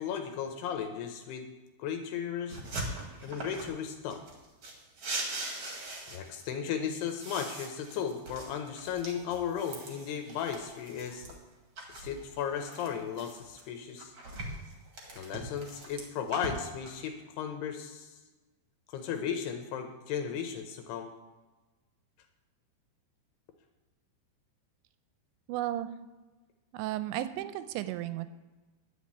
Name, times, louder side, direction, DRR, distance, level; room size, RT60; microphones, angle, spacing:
voice 1, 0.0-1.5 1.8-2.6 3.2-4.2 6.1-11.4 11.9-14.1 15.2-18.1 18.9-21.1, left 8 dB, 75° left, 5 dB, 2.5 m, -35 dB
sound 1, 2.5-3.8 4.1-6.5 6.8-11.3 11.8-13.6 14.0-16.9, right 2 dB, 45° right, 1.8 m, -41 dB
voice 2, 25.5-25.9 26.7-28.3, right 13 dB, 85° right, 12 dB, 2.9 m, -34 dB
11.0 x 5.9 x 8.5 m, 1.2 s
omnidirectional pair, 5.3 m